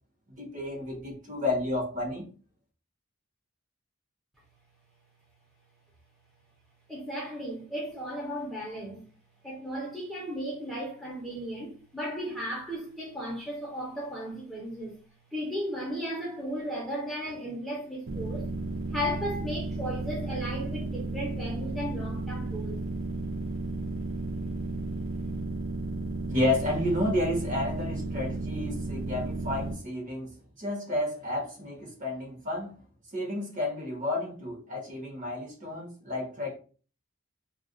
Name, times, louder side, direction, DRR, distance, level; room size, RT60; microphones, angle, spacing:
voice 1, 0.4-2.3 26.3-32.7 33.1-36.6, left 1 dB, 40° right, 1.0 m, -31 dB
voice 2, 6.9-9.0 9.4-15.0 15.3-18.5 18.9-22.8, equal, ahead, 0.6 m, -35 dB
sound 1, 18.1-29.7, right 2 dB, 70° right, 0.4 m, -33 dB
2.4 x 2.2 x 3.6 m
head